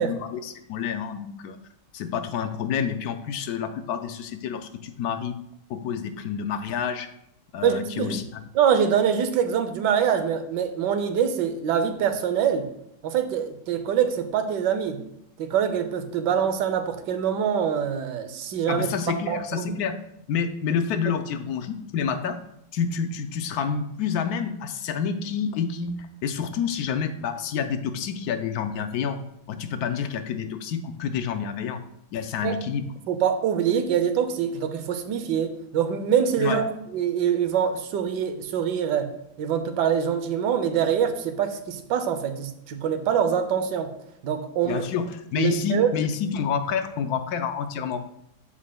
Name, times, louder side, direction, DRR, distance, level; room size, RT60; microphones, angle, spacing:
voice 1, 0.0-1.6 1.9-5.4 5.7-7.1 7.5-8.2 18.7-20.0 20.3-22.4 22.7-29.2 29.5-31.8 32.1-32.8 36.4-36.6 44.6-48.0, left 7 dB, 70° left, 9 dB, 1.0 m, -28 dB
voice 2, 7.6-8.2 8.5-12.7 13.0-15.0 15.4-18.9 19.3-19.7 32.4-32.6 33.1-36.6 36.9-39.1 39.4-43.9 44.2-44.9 45.4-45.9, right 8 dB, 85° right, 8 dB, 1.3 m, -24 dB
12.5 x 4.9 x 2.2 m, 0.76 s
omnidirectional pair, 1.8 m